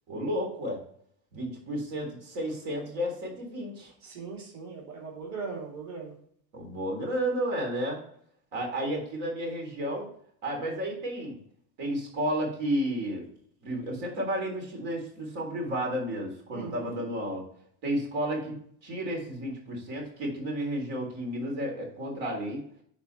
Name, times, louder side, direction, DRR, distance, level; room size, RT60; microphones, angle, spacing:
voice 1, 0.1-0.8 1.3-3.9 6.5-8.0 8.5-10.1 10.4-11.4 11.8-13.3 13.6-17.4 17.8-18.5 18.8-22.6, equal, 75° right, 0 dB, 3.7 m, -32 dB
voice 2, 4.0-6.1 16.5-16.9, right 4 dB, 40° right, -2 dB, 2.8 m, -39 dB
10.5 x 4.2 x 4.3 m, 0.63 s
supercardioid pair, 115°, 42 cm